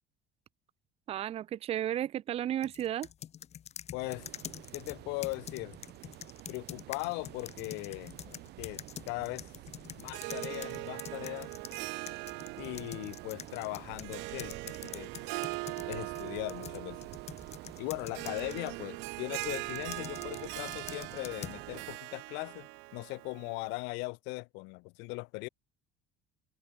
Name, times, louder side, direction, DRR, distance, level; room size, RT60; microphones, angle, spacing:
voice 1, 1.1-3.1, right 11 dB, 35° right, 0.4 m, -33 dB
sound 1, 2.6-11.8 12.1-18.7 19.3-21.6, left 9 dB, 35° left, 1.0 m, -46 dB
voice 2, 3.9-4.3 4.7-5.8 6.5-9.5 10.0-11.5 12.6-15.1 15.9-17.0 17.8-25.5, left 28 dB, 75° left, 0.4 m, -39 dB
sound 2, 4.0-22.0, right 17 dB, 65° right, 3.7 m, -50 dB
Harp, 10.0-23.8, right 28 dB, 80° right, 1.8 m, -41 dB
cardioid pair, 125°, 18 cm